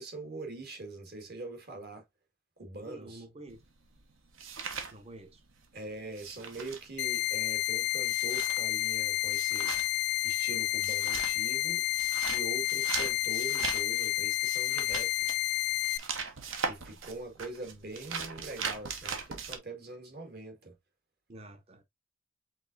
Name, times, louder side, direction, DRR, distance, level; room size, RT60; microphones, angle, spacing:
voice 1, 0.0-2.0 2.6-3.2 5.7-9.7 10.2-11.8 12.3-15.1 16.6-20.7, right 2 dB, 50° right, 1.7 m, -43 dB
voice 2, 2.8-3.6 4.9-5.4 21.3-21.8, right 1 dB, 30° right, 0.8 m, -48 dB
sound 1, 3.5-5.7 5.9-19.6, right 5 dB, 65° right, 1.0 m, -40 dB
sound 2, 7.0-16.0, left 16 dB, 50° left, 0.3 m, -30 dB
5.3 x 3.8 x 2.5 m
head